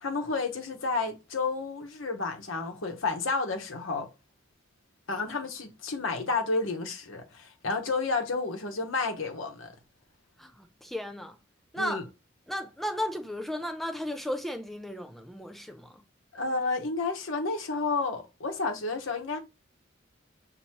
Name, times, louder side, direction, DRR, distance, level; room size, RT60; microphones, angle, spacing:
voice 1, 0.0-4.1 5.1-9.7 11.8-12.0 16.3-19.4, left 3 dB, 80° left, 1.0 m, -31 dB
voice 2, 10.4-11.4 11.7-12.0 12.5-16.0, left 1 dB, ahead, 0.5 m, -35 dB
5.9 x 2.7 x 2.9 m
head